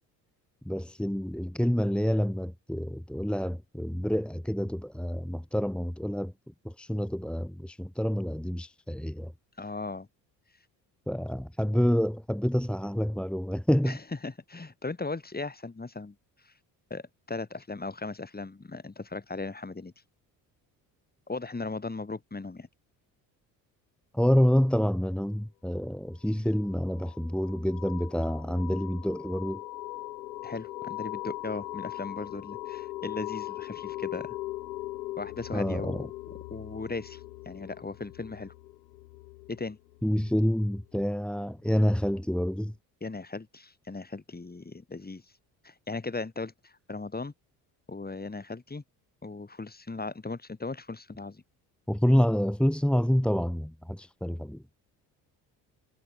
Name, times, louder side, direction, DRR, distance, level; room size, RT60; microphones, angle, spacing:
voice 1, 0.7-6.3 6.6-9.3 11.1-14.0 24.1-29.6 35.5-36.1 40.0-42.7 51.9-54.6, equal, ahead, 1.8 m, -27 dB
voice 2, 9.6-10.1 13.8-14.0 14.2-16.1 16.5-16.6 16.9-17.0 17.3-19.9 21.3-22.7 30.4-34.4 35.2-36.1 36.5-38.5 39.5-39.8 43.0-45.2 45.6-47.3 47.9-48.8 49.2-51.4, left 3 dB, 20° left, 3.8 m, -37 dB
sound 1, 26.5-41.0, left 18 dB, 85° left, 0.8 m, -40 dB
hypercardioid pair, 55°, 49 cm